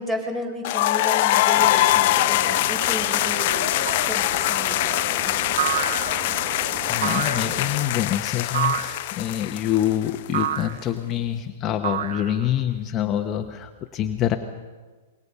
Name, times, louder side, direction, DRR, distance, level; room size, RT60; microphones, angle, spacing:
voice 1, 0.0-3.8 4.0-5.4, left 1 dB, 15° right, 4 dB, 5.5 m, -33 dB
sound 1, 0.6-10.4, left 16 dB, 55° left, 0.7 m, -23 dB
sound 2, 1.5-7.9, right 8 dB, 45° right, 1.4 m, -37 dB
sound 3, 3.9-4.3 5.6-6.4 7.0-7.6 8.5-9.1 10.3-10.8 11.8-12.6, right 10 dB, 65° right, 0.8 m, -28 dB
voice 2, 6.9-14.4, left 11 dB, 30° left, 5 dB, 1.2 m, -26 dB
26.0 x 22.0 x 5.6 m, 1.3 s
hypercardioid pair, 115°, 0 cm